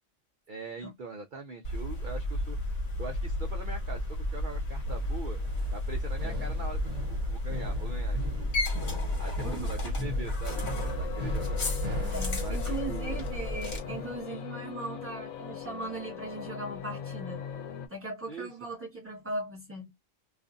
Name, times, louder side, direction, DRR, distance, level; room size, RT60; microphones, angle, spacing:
voice 1, 0.5-2.6 3.0-5.4 5.7-8.5 9.2-11.6 12.4-13.2 14.3-14.5 18.3-18.5, right 4 dB, 60° right, 0.5 m, -42 dB
sound 1, 1.6-13.8, left 1 dB, 65° left, 1.4 m, -32 dB
sound 2, 4.9-14.2, equal, 35° right, 0.9 m, -42 dB
voice 2, 9.4-9.9 12.1-17.4 17.9-19.9, right 2 dB, 10° right, 1.3 m, -38 dB
sound 3, 10.5-17.9, left 9 dB, 90° left, 1.1 m, -40 dB
2.4 x 2.4 x 2.5 m
omnidirectional pair, 1.4 m